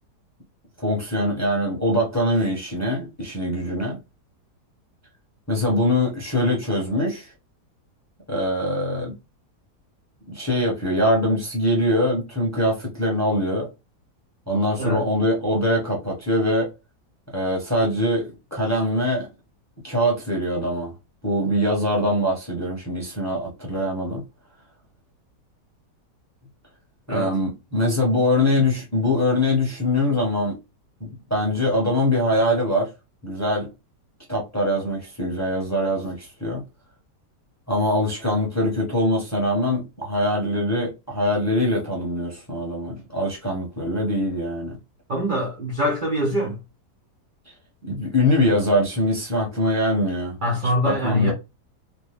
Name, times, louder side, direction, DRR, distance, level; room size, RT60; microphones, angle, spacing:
voice 1, 0.8-4.0 5.5-7.3 8.3-9.1 10.3-13.7 14.5-16.7 17.3-19.3 19.8-20.9 21.2-24.2 27.1-30.5 31.3-32.9 33.2-33.7 34.3-36.6 37.7-44.8 47.8-50.4 50.6-51.3, left 1 dB, 15° left, 0.7 m, -23 dB
voice 2, 45.1-46.6 50.4-51.3, left 1 dB, 75° right, 0.4 m, -23 dB
3.1 x 2.1 x 3.4 m
omnidirectional pair, 1.8 m